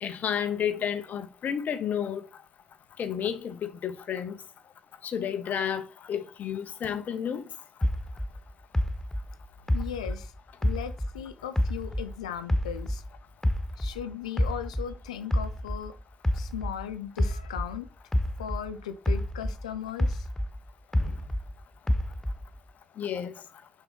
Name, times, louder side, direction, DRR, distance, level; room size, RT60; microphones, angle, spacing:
voice 1, 0.0-2.2 3.0-4.4 5.0-7.4 21.0-21.1 23.0-23.3, left 8 dB, 50° left, 0.9 m, -31 dB
sound 1, 7.8-11.2 11.6-14.0 14.4-18.7 19.1-21.5 21.9-22.6, left 1 dB, 10° left, 0.7 m, -28 dB
voice 2, 9.7-10.3 10.6-13.0 13.8-15.9 16.3-17.9 18.4-20.3, left 9 dB, 80° left, 0.6 m, -37 dB
5.9 x 4.8 x 5.5 m
figure-of-eight pair, 45°, 3 cm